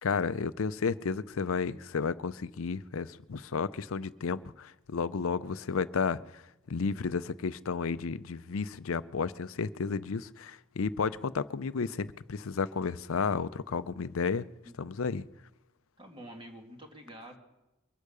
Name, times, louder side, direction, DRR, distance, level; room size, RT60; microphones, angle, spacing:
voice 1, 0.0-6.4 6.7-14.5 14.8-15.2, left 5 dB, 70° left, 0.5 m, -32 dB
voice 2, 16.0-17.4, right 1 dB, 25° right, 2.2 m, -47 dB
23.0 x 8.4 x 6.8 m
head